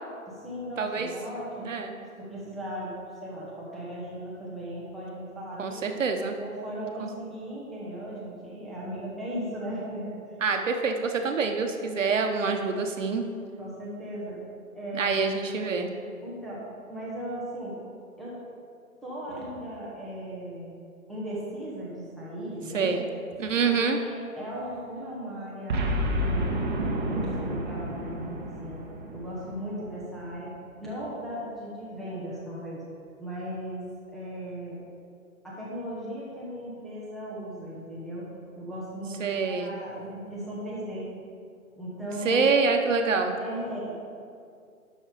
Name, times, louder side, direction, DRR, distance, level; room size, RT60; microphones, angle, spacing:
voice 1, 0.3-1.7 2.2-2.9 3.2-5.9 6.4-10.2 13.6-14.4 14.7-15.2 16.2-17.8 18.2-18.4 19.0-20.8 21.1-22.9 23.6-26.7 27.0-28.8 29.1-32.8 33.2-34.8 35.4-38.3 38.6-41.1 41.8-42.4 43.4-43.9, right 1 dB, ahead, -8 dB, 0.8 m, -37 dB
voice 2, 0.8-1.1 1.6-1.9 5.6-6.4 10.4-13.2 14.9-15.9 22.7-23.0 23.4-24.0 39.2-39.7 42.2-43.3, right 4 dB, 60° right, 5 dB, 1.2 m, -26 dB
Boom, 25.7-30.1, equal, 35° right, 1.0 m, -30 dB
11.0 x 6.3 x 5.0 m, 2.3 s
figure-of-eight pair, 140°, 43 cm